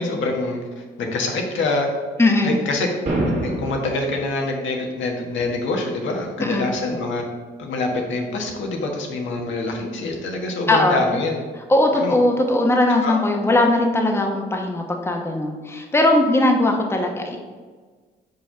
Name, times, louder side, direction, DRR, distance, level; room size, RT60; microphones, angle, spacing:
voice 1, 0.0-1.9 2.4-2.9 3.4-7.2 7.6-11.4 12.0-12.2 13.0-13.1, left 2 dB, 75° left, 1 dB, 1.4 m, -25 dB
voice 2, 2.2-2.6 6.4-6.7 10.7-11.0 11.7-17.4, left 1 dB, 10° left, 2 dB, 1.0 m, -19 dB
sound 1, 3.1-4.1, right 1 dB, 40° right, 1.8 m, -24 dB
5.5 x 4.4 x 5.6 m, 1.4 s
cardioid pair, 90°, 20 cm